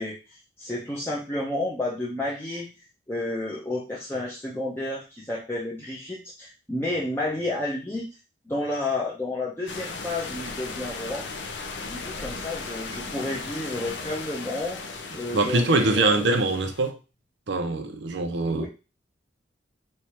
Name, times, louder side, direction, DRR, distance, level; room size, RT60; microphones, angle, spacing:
voice 1, 0.0-2.7 3.1-8.1 8.5-11.3 11.9-16.1 18.5-18.7, left 2 dB, 10° left, 0.6 m, -31 dB
sound 1, 9.7-16.9, left 4 dB, 70° left, 0.5 m, -37 dB
voice 2, 15.3-17.0 17.5-18.7, right 2 dB, 65° right, 0.6 m, -23 dB
3.2 x 2.4 x 4.2 m
head